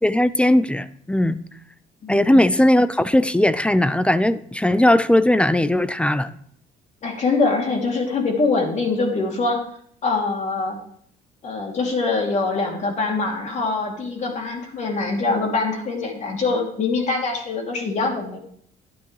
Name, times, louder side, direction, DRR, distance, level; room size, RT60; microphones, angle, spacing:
voice 1, 0.0-1.4 2.1-6.4, left 1 dB, 5° left, 15 dB, 0.4 m, -18 dB
voice 2, 2.0-2.4 7.0-9.6 10.0-10.8 11.4-18.4, left 3 dB, 45° left, 1 dB, 2.6 m, -23 dB
11.0 x 10.0 x 3.2 m, 0.65 s
cardioid pair, 110°, 17 cm